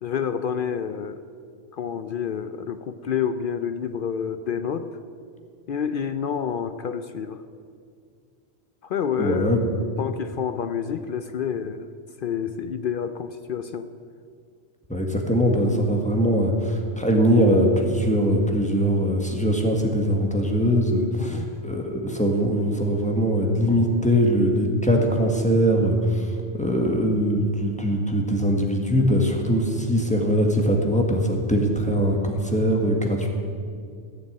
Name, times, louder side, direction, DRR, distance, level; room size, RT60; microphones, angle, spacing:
voice 1, 0.0-1.2 1.7-5.0 5.7-7.4 8.8-9.6 10.0-11.9 12.2-13.9 21.2-21.5, left 7 dB, 60° left, 11 dB, 0.7 m, -28 dB
voice 2, 9.2-9.6 14.9-26.3 26.5-33.3, equal, 5° left, 1 dB, 1.7 m, -21 dB
15.5 x 6.9 x 9.2 m, 2.2 s
omnidirectional pair, 1.1 m